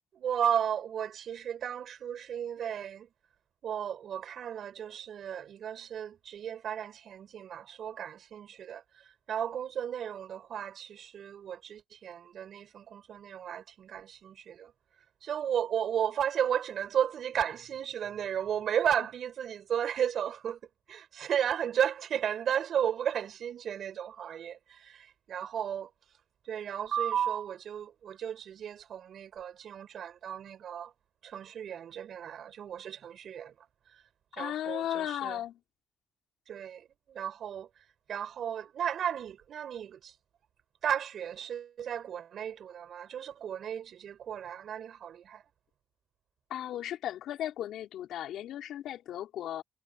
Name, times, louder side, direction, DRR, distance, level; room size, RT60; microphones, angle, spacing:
voice 1, 0.1-3.1 3.6-14.7 15.2-20.6 20.9-25.9 26.5-30.9 31.2-33.5 34.3-35.4 36.5-37.7 38.1-40.1 40.8-45.4, right 9 dB, 65° right, 6.2 m, -34 dB
voice 2, 34.3-35.6 46.5-49.6, left 11 dB, 80° left, 4.4 m, -36 dB
cardioid pair, 90°, 0 cm